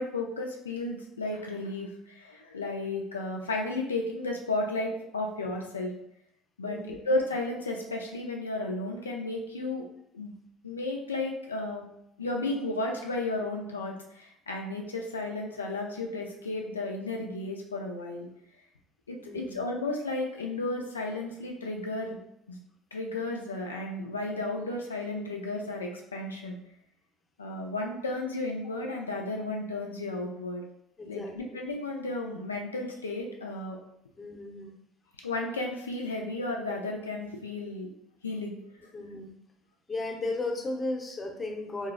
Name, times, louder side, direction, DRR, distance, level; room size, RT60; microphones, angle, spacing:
voice 1, 0.0-5.9 6.6-9.9 10.1-10.3 10.6-11.9 12.2-18.3 19.1-22.2 22.5-22.6 22.9-26.6 27.4-30.6 31.0-33.8 35.2-37.9 38.2-38.6, left 2 dB, 90° left, 1 dB, 0.4 m, -33 dB
voice 2, 6.6-7.0 19.2-19.6 31.0-31.3 34.2-34.7 38.9-39.3 39.9-41.9, left 2 dB, 30° left, 2 dB, 0.7 m, -35 dB
4.2 x 2.0 x 2.4 m, 0.77 s
hypercardioid pair, 65°, 0 cm